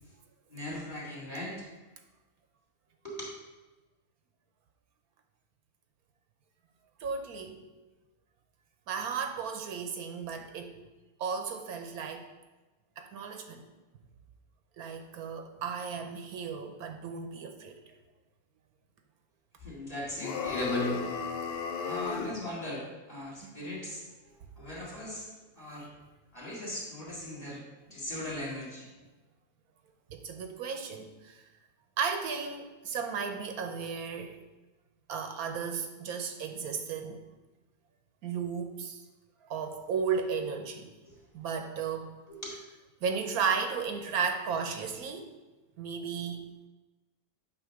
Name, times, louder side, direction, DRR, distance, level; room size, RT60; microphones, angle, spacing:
voice 1, 0.5-1.6 3.0-3.2 19.6-21.2 21.8-24.0 24.6-25.3 25.6-25.9 26.3-27.6 27.9-28.9 42.3-42.4, left 1 dB, 25° left, -5 dB, 2.3 m, -37 dB
voice 2, 7.0-7.6 8.9-10.7 11.2-12.3 13.0-13.6 14.8-17.8 23.4-23.6 30.1-31.4 32.0-34.4 35.1-37.2 38.2-39.0 39.4-40.9 41.3-42.1 43.0-45.3 45.8-46.4, right 6 dB, 80° right, 6 dB, 1.2 m, -34 dB
sound 1, 20.2-22.4, left 6 dB, 60° left, 0.6 m, -34 dB
8.6 x 2.9 x 6.3 m, 1.2 s
omnidirectional pair, 1.6 m